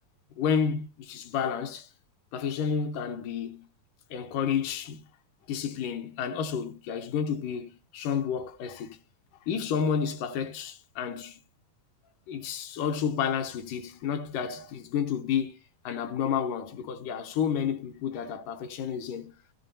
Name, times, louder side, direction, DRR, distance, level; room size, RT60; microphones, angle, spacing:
voice 1, 0.4-1.9 2.3-3.7 4.1-5.0 5.5-9.0 9.5-11.4 12.3-15.6 15.8-19.3, left 7 dB, 80° left, 2.5 m, -30 dB
15.0 x 11.5 x 2.7 m
omnidirectional pair, 3.8 m